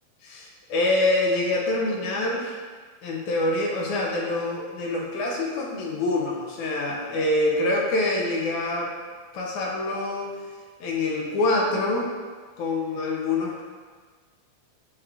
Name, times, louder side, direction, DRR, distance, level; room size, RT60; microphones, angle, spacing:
voice 1, 0.2-2.6 3.0-8.9 9.3-10.3 10.8-12.1 12.6-13.6, left 2 dB, 85° left, -1 dB, 2.3 m, -25 dB
8.0 x 4.7 x 2.5 m, 1.5 s
omnidirectional pair, 3.3 m